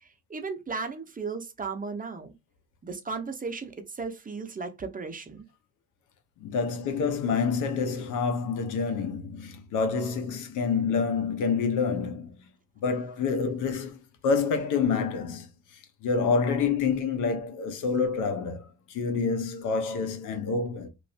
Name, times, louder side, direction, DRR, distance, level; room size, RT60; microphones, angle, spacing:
voice 1, 0.3-2.3 2.8-5.4, right 4 dB, 25° right, 0.8 m, -35 dB
voice 2, 6.4-12.4 12.8-14.0 14.2-20.9, left 5 dB, 90° left, 0.9 m, -28 dB
3.1 x 2.6 x 2.7 m
cardioid pair, 90°, 30 cm